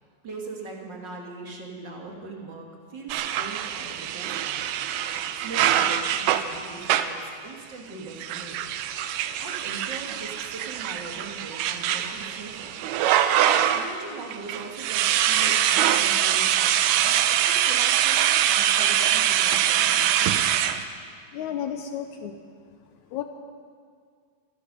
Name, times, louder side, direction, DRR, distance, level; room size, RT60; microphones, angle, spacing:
voice 1, 0.2-4.6 5.3-8.6 9.4-12.8 13.7-20.5, right 3 dB, 45° right, 0 dB, 1.7 m, -40 dB
sound 1, 3.1-7.2 8.1-14.0 14.3-20.8, right 10 dB, 80° right, 2.1 m, -24 dB
voice 2, 21.3-22.4 23.1-23.2, left 9 dB, 75° left, 6 dB, 1.8 m, -32 dB
25.0 x 9.9 x 5.3 m, 2.1 s
omnidirectional pair, 4.0 m